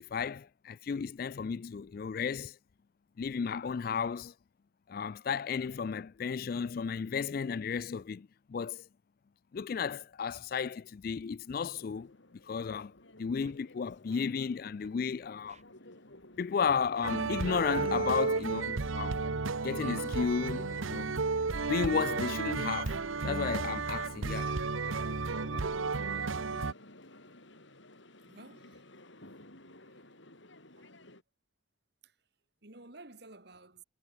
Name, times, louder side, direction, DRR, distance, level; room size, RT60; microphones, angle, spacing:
voice 1, 0.0-2.6 3.2-4.3 4.9-8.8 9.5-12.2 12.5-12.9 13.2-15.6 16.4-19.2 19.6-21.2 21.6-23.0 23.2-24.6, left 6 dB, 45° left, 0.3 m, -33 dB
sound 1, 11.5-31.2, left 1 dB, 70° left, 6.0 m, -55 dB
Scratching (performance technique), 13.4-13.6 13.9-14.5 14.8-15.0 15.5-15.6 16.2-16.4 16.8-17.8 18.2-18.5, right 4 dB, 35° right, 4.1 m, -61 dB
sound 2, 17.0-26.7, right 4 dB, 90° right, 1.0 m, -33 dB
voice 2, 28.3-28.8 29.6-30.0 30.8-30.9 32.0-32.1 32.6-33.8, right 2 dB, 55° right, 2.3 m, -53 dB
head